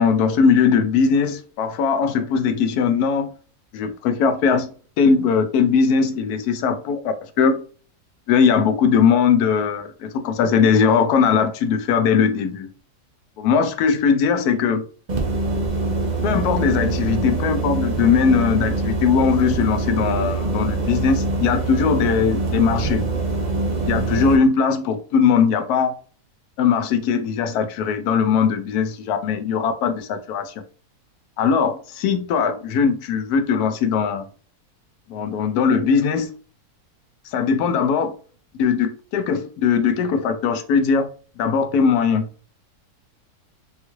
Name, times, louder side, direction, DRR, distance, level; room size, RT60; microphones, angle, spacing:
voice 1, 0.0-3.3 3.7-7.5 8.3-12.7 13.4-14.8 16.2-23.0 23.9-25.9 26.6-30.5 31.4-34.3 35.1-36.3 37.3-38.1 38.6-41.1 41.4-42.3, left 6 dB, 85° left, 1.1 m, -20 dB
sound 1, 15.1-24.4, right 3 dB, 55° right, 0.5 m, -24 dB
3.5 x 2.4 x 3.0 m
omnidirectional pair, 1.6 m